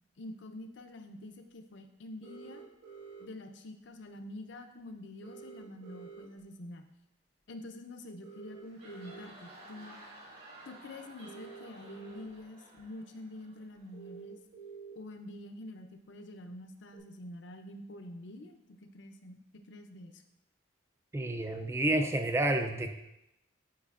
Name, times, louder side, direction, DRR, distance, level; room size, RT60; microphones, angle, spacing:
voice 1, 0.2-2.6 3.2-6.8 7.5-10.0 10.7-14.4 15.0-18.6 18.9-20.2, left 1 dB, 65° left, 6 dB, 0.6 m, -47 dB
sound 1, 2.2-3.2 5.2-6.2 8.2-9.2 11.2-12.2 12.8-12.9 13.9-14.9 16.9-17.0, right 6 dB, 75° right, 1.4 m, -49 dB
sound 2, 8.5-14.1, right 1 dB, 45° right, 2.0 m, -54 dB
voice 2, 21.1-22.9, right 1 dB, 15° right, 7 dB, 0.3 m, -29 dB
8.5 x 4.9 x 2.5 m, 0.88 s
head